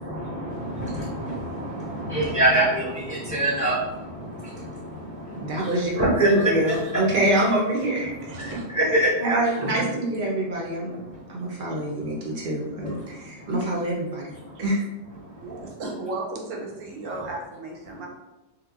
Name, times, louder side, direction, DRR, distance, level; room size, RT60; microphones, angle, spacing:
voice 1, 0.0-7.2 8.0-9.4 10.8-13.5 14.3-14.6 15.2-15.7 17.9-18.1, right 1 dB, 15° left, -11 dB, 0.9 m, -27 dB
voice 2, 5.4-5.9 6.2-8.4 9.2-11.0 11.3-14.8, right 1 dB, 55° right, -3 dB, 0.6 m, -25 dB
voice 3, 8.3-8.6 9.6-10.0 11.7-12.0 14.5-14.6 15.4-18.1, right 2 dB, 90° right, 0 dB, 1.0 m, -34 dB
3.0 x 2.1 x 2.3 m, 1.0 s
omnidirectional pair, 1.3 m